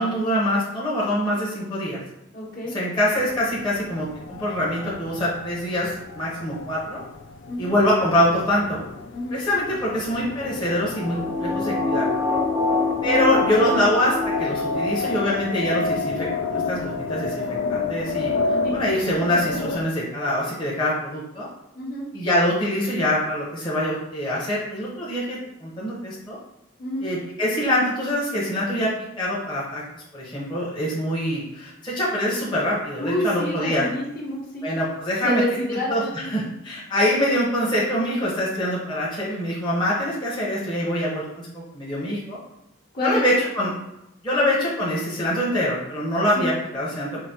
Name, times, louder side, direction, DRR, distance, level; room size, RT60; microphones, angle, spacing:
voice 1, 0.0-2.0 2.7-7.0 7.6-8.8 9.3-12.1 13.0-17.4 17.7-18.3 18.7-21.5 22.1-26.4 27.0-28.9 29.2-33.9 34.6-35.4 35.9-42.4 43.0-43.7 44.2-47.1, left 1 dB, 25° left, -7 dB, 0.9 m, -24 dB
voice 2, 2.3-2.7 7.5-7.7 9.1-9.4 18.6-18.7 21.7-22.1 26.8-27.1 33.0-34.7 35.2-36.5 42.9-43.2 44.3-44.4 46.3-46.5, equal, 55° left, -5 dB, 1.2 m, -28 dB
sound 1, 3.2-19.8, left 4 dB, 85° left, 0.4 m, -31 dB
sound 2, 10.6-15.4 15.7-15.8, left 3 dB, 15° right, 0.5 m, -25 dB
4.9 x 2.6 x 2.9 m, 0.87 s
head